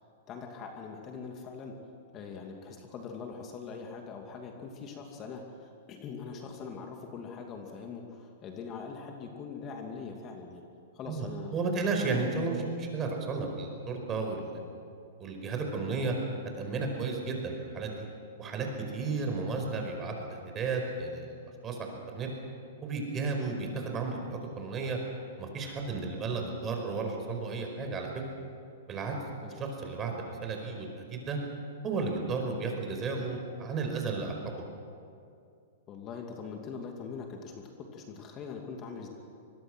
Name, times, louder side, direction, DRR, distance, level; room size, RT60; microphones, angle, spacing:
voice 1, 0.3-1.8 2.1-10.6 10.9-11.6 23.4-23.5 29.4-29.5 35.9-39.1, left 5 dB, 30° left, 2 dB, 2.6 m, -42 dB
voice 2, 11.1-14.6 15.2-16.2 16.6-18.0 18.4-18.7 18.9-21.3 21.6-22.3 22.8-25.0 25.4-28.2 28.9-29.1 29.6-31.4 31.8-34.4, right 4 dB, 25° right, 3 dB, 5.0 m, -33 dB
24.5 x 21.0 x 6.3 m, 2.4 s
hypercardioid pair, 125°, 0 cm